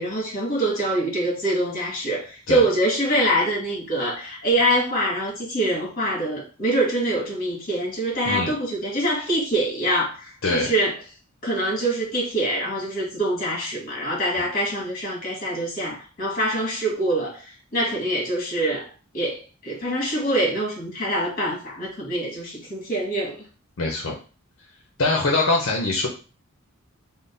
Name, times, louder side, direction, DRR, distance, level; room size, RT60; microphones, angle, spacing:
voice 1, 0.0-10.9 11.4-18.9 19.1-23.4, right 1 dB, 40° left, 1.6 m, -24 dB
voice 2, 23.8-24.1 25.0-26.1, left 2 dB, 65° left, 0.7 m, -23 dB
3.7 x 2.1 x 3.9 m
head